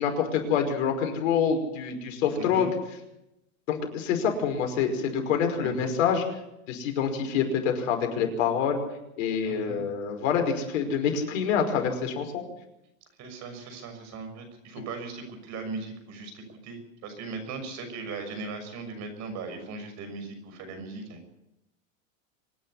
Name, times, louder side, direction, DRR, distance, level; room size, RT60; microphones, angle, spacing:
voice 1, 0.0-2.7 3.7-6.2 6.7-8.8 9.2-12.4, left 7 dB, 70° left, 4 dB, 5.5 m, -26 dB
voice 2, 2.4-2.7 5.6-6.0 9.5-9.9 13.2-21.4, right 4 dB, 40° right, 7 dB, 6.5 m, -38 dB
25.0 x 10.5 x 9.9 m, 0.89 s
supercardioid pair, 125°, 41 cm